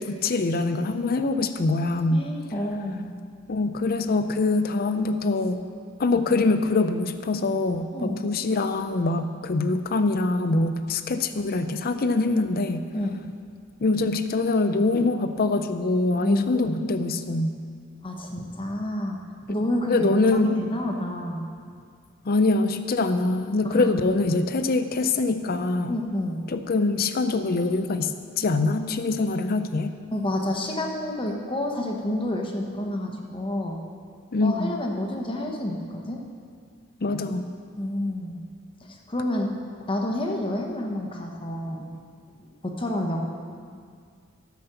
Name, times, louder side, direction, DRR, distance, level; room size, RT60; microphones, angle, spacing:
voice 1, 0.0-2.3 3.5-5.6 6.0-12.8 13.8-17.5 19.9-20.5 22.2-26.0 26.5-28.1 28.4-29.9 34.3-34.7 37.0-37.5, left 3 dB, 45° left, 9 dB, 0.5 m, -24 dB
voice 2, 2.1-3.1 7.9-8.3 12.9-13.2 16.2-17.3 18.0-19.2 19.5-20.2 20.5-21.5 23.6-24.0 25.9-26.4 30.1-33.8 34.4-36.2 37.7-38.4 38.8-39.5 39.9-41.9 42.4-43.2, left 1 dB, 25° left, 2 dB, 1.1 m, -29 dB
12.5 x 6.0 x 6.8 m, 2.1 s
head